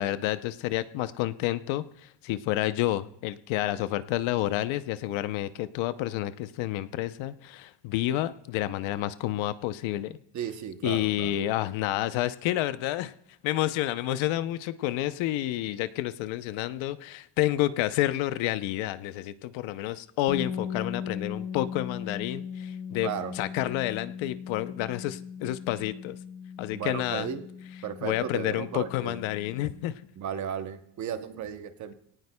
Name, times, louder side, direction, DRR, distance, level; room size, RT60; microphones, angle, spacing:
voice 1, 0.0-10.2 10.8-13.1 13.4-23.1 23.4-26.2 26.6-27.3 28.0-29.9, left 14 dB, 80° left, 14 dB, 0.7 m, -29 dB
voice 2, 10.3-11.4 23.0-23.3 26.7-27.5 27.8-29.2 30.2-31.9, right 9 dB, 40° right, 10 dB, 0.8 m, -35 dB
sound 1, 20.3-30.0, left 6 dB, 10° left, 3.7 m, -39 dB
25.5 x 18.0 x 2.2 m, 0.72 s
cardioid pair, 180°, 46 cm